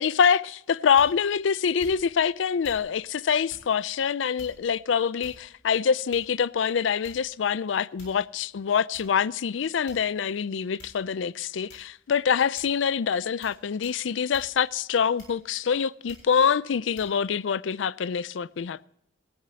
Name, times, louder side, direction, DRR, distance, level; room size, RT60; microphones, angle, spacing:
voice 1, 0.0-18.9, left 7 dB, 85° left, 0.4 m, -25 dB
sound 1, 1.0-1.3 1.8-2.2 2.6-2.9 3.5-3.7 4.4-4.8 5.2-5.6 6.1-6.4 7.0-7.4 8.0-8.3 8.9-9.1 9.9-10.3 10.8-11.0 11.7-12.0 12.6-12.8 13.4-13.6 13.8-14.0 14.3-14.5 15.2-15.6 16.1-16.3 17.0-17.1, left 1 dB, 70° left, 6.9 m, -49 dB
18.5 x 15.0 x 2.8 m
head